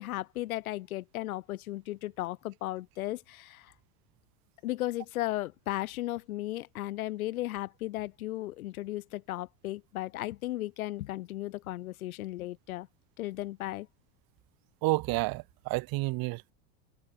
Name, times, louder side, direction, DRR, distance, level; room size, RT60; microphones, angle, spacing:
voice 1, 0.0-3.7 4.6-12.9 13.2-13.9, left 16 dB, 75° left, 2.6 m, -35 dB
voice 2, 14.8-16.5, right 22 dB, 55° right, 2.5 m, -30 dB
hypercardioid pair, 90°, 43 cm